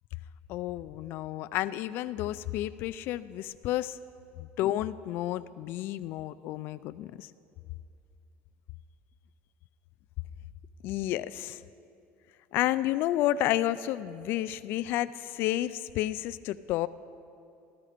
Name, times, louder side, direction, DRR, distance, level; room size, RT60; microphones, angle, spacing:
voice 1, 0.5-4.0 4.4-7.3 10.8-11.6 12.5-16.9, left 14 dB, 50° left, 15 dB, 0.4 m, -31 dB
14.5 x 13.5 x 5.0 m, 2.6 s
cardioid pair, 170°, 5 cm